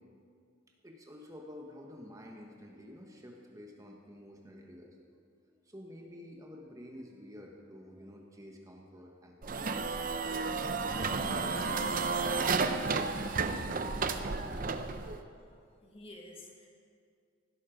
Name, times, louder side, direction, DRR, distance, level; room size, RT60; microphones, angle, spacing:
voice 1, 0.8-5.0 5.5-10.3 11.0-14.8 15.8-15.9, left 1 dB, 20° right, 0 dB, 1.4 m, -50 dB
sound 1, 9.4-15.2, right 4 dB, 45° right, 0.7 m, -32 dB
voice 2, 15.3-16.7, left 1 dB, 30° left, 1 dB, 1.7 m, -53 dB
16.0 x 12.5 x 5.2 m, 2.2 s
head